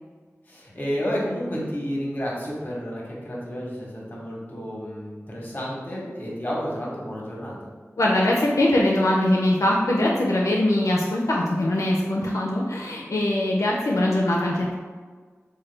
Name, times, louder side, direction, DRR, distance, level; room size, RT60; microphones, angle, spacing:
voice 1, 0.5-7.7, equal, 35° left, -4 dB, 0.9 m, -31 dB
voice 2, 8.0-14.7, left 1 dB, 75° left, -3 dB, 0.4 m, -22 dB
3.2 x 2.2 x 3.2 m, 1.5 s
wide cardioid pair, 50°, 5 cm